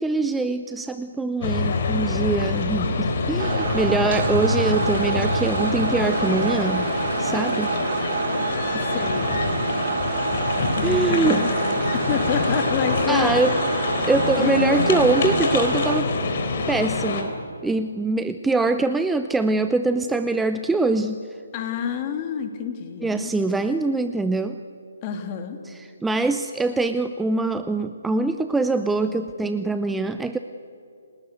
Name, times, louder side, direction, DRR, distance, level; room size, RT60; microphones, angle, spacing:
voice 1, 0.0-6.9 7.2-7.7 8.7-8.8 10.8-11.4 13.1-13.6 14.0-16.2 16.7-17.3 17.6-21.2 23.0-24.6 26.0-30.4, right 3 dB, 5° right, 9 dB, 0.6 m, -23 dB
sound 1, 1.4-17.2, left 3 dB, 45° left, 3.9 m, -25 dB
sound 2, 3.4-16.0, right 6 dB, 50° right, 1.3 m, -28 dB
voice 2, 8.8-9.4 10.8-13.4 14.4-14.8 21.5-23.3 25.0-25.6, left 8 dB, 30° left, 6 dB, 2.8 m, -29 dB
29.0 x 19.0 x 8.2 m, 2.6 s
figure-of-eight pair, 140°, 0 cm